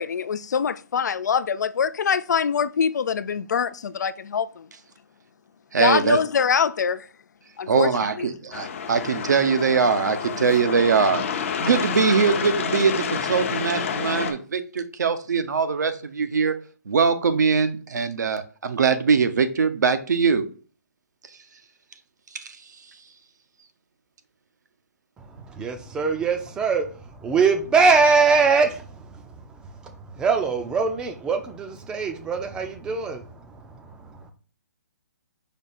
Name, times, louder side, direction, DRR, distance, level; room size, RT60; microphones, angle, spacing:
voice 1, 0.0-4.7 5.8-7.1 7.6-8.3, left 7 dB, 80° left, 0.4 m, -24 dB
voice 2, 5.7-6.2 7.7-11.2 11.6-16.6 16.9-20.5 22.3-22.6, right 5 dB, 80° right, 0.7 m, -22 dB
sound 1, 8.5-14.3, left 7 dB, 45° left, 0.7 m, -29 dB
voice 3, 25.2-34.3, right 4 dB, 10° right, 0.4 m, -23 dB
5.2 x 2.3 x 4.2 m
hypercardioid pair, 155°, 9 cm